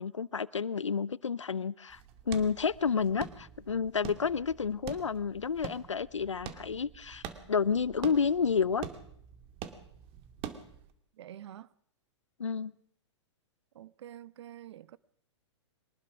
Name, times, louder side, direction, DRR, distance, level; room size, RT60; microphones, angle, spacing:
voice 1, 0.0-2.0 2.3-8.8 12.4-12.7, left 6 dB, 90° left, 0.8 m, -30 dB
sound 1, 1.9-10.9, right 8 dB, 40° right, 2.4 m, -45 dB
voice 2, 11.1-11.7 13.7-15.0, right 11 dB, 65° right, 1.0 m, -47 dB
23.5 x 19.5 x 6.1 m
hypercardioid pair, 110°, 15 cm